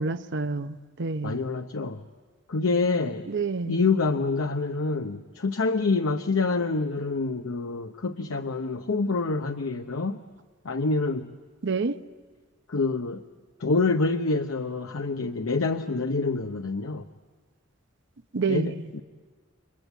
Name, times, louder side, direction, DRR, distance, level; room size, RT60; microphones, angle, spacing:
voice 1, 0.0-1.4 3.3-3.8 11.6-12.0 18.3-18.9, right 4 dB, 60° right, 11 dB, 0.8 m, -28 dB
voice 2, 1.2-2.0 2.5-3.3 3.7-10.2 10.6-11.3 12.7-13.2 13.6-17.1 18.5-19.0, left 3 dB, 80° left, 7 dB, 0.8 m, -26 dB
29.5 x 24.5 x 8.2 m, 1.5 s
head